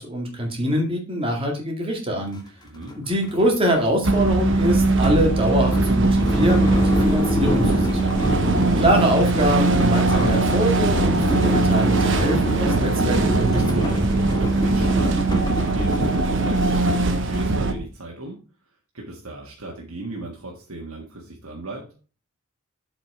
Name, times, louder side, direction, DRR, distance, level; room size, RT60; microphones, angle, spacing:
voice 1, 0.0-2.4 3.0-8.2 8.8-14.2, equal, 25° right, 2 dB, 2.1 m, -24 dB
sound 1, 2.3-2.4 2.8-17.5, left 1 dB, 20° left, 1.4 m, -27 dB
voice 2, 2.6-3.0 14.6-18.4 18.9-21.9, right 2 dB, 85° right, -1 dB, 1.7 m, -36 dB
sound 2, 4.0-17.7, right 3 dB, 60° right, 1.0 m, -21 dB
7.6 x 5.1 x 4.9 m, 0.35 s
head